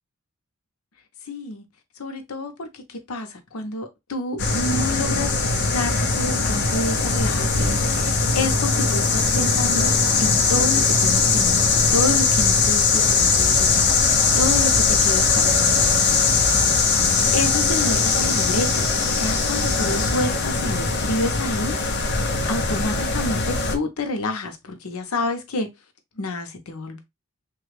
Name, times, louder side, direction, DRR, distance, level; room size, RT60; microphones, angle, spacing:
voice 1, 1.3-1.6 2.0-5.4 5.7-9.9 10.2-16.1 16.4-16.7 17.3-18.9 19.1-21.8 22.5-25.7 26.2-27.0, left 2 dB, 85° left, 0.8 m, -29 dB
sound 1, 4.4-23.8, left 4 dB, 50° left, 0.6 m, -20 dB
3.2 x 2.3 x 3.2 m
head